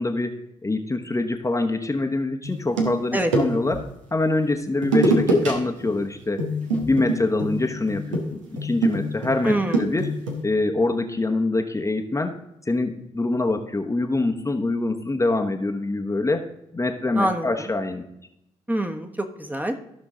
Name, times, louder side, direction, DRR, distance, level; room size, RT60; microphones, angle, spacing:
voice 1, 0.0-3.8 4.1-6.5 6.8-10.1 10.4-12.4 12.7-16.5 16.7-18.1, left 2 dB, 20° left, 4 dB, 1.0 m, -25 dB
sound 1, 2.4-3.8 4.8-5.5 5.8-6.1 6.4-10.4, right 1 dB, 85° right, 1.2 m, -24 dB
voice 2, 9.4-9.9 17.1-17.7 18.7-19.7, right 1 dB, 10° right, 6 dB, 1.2 m, -25 dB
14.0 x 5.9 x 3.8 m, 0.81 s
figure-of-eight pair, 40°, 16 cm